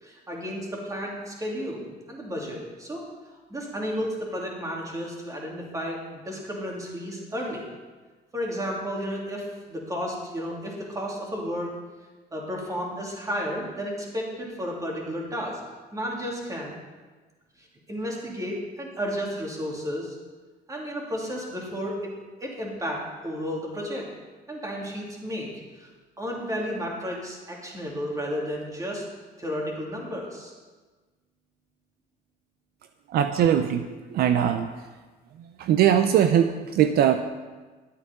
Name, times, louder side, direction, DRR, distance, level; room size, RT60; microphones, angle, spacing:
voice 1, 0.0-3.0 3.5-7.6 8.3-11.7 12.3-15.6 15.9-16.8 17.6-20.2 20.7-22.1 22.4-24.1 24.5-25.5 25.8-25.9 26.2-29.0 29.4-30.5, equal, 20° right, -2 dB, 2.8 m, -32 dB
voice 2, 33.1-34.7 35.6-37.2, right 9 dB, 70° right, 8 dB, 0.6 m, -21 dB
11.0 x 8.4 x 5.2 m, 1.3 s
cardioid pair, 110°, 17 cm